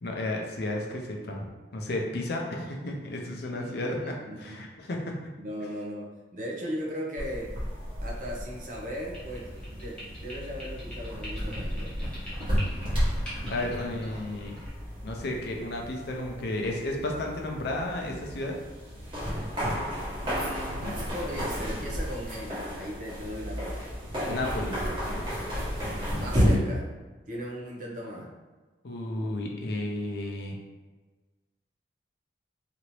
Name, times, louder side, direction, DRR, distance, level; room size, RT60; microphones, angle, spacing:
voice 1, 0.0-5.3 13.5-14.6 15.0-18.5 20.7-20.9 24.3-24.8 28.8-30.6, left 1 dB, 60° left, 0 dB, 0.5 m, -33 dB
voice 2, 3.5-4.7 5.4-7.5 8.0-11.9 20.2-23.9 26.1-26.9 27.3-28.3, equal, 45° right, -2 dB, 0.6 m, -38 dB
sound 1, 7.2-26.6, equal, 25° right, 1.1 m, -32 dB
sound 2, 9.1-14.7, equal, 5° left, 0.9 m, -44 dB
2.9 x 2.6 x 3.0 m, 1.3 s
head